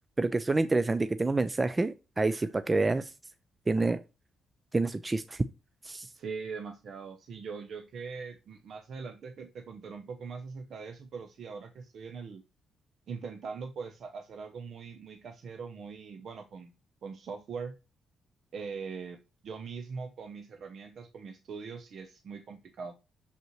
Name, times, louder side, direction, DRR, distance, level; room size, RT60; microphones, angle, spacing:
voice 1, 0.2-3.1 3.7-4.0 4.7-5.4 5.8-6.1, right 3 dB, 20° right, 0.4 m, -28 dB
voice 2, 6.1-12.4 13.1-16.7 17.0-17.8 18.5-19.2 19.4-22.9, right 5 dB, 60° right, 0.7 m, -41 dB
6.6 x 5.3 x 3.0 m
cardioid pair, 90°, 0 cm